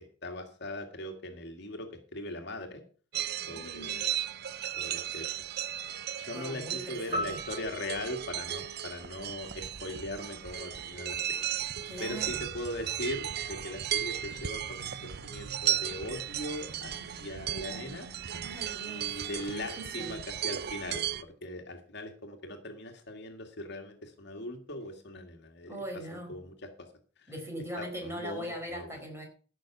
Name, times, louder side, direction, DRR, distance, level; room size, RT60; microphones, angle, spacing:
voice 1, 0.0-2.8 3.5-4.2 4.8-5.3 6.2-11.5 12.0-18.1 18.9-25.8 26.1-26.9 27.2-27.3 27.8-29.0, left 1 dB, 60° left, 5 dB, 1.9 m, -40 dB
sound 1, 3.1-21.2, right 10 dB, 55° right, 0.6 m, -36 dB
voice 2, 3.4-4.0 6.3-7.4 11.8-12.5 18.4-20.2 25.7-26.4 27.3-29.3, right 1 dB, 15° right, 1 dB, 4.5 m, -41 dB
sound 2, 7.1-9.6, equal, 35° right, 4.1 m, -39 dB
sound 3, 11.9-18.7, right 1 dB, 80° right, 1.6 m, -50 dB
14.5 x 6.3 x 6.0 m, 0.40 s
head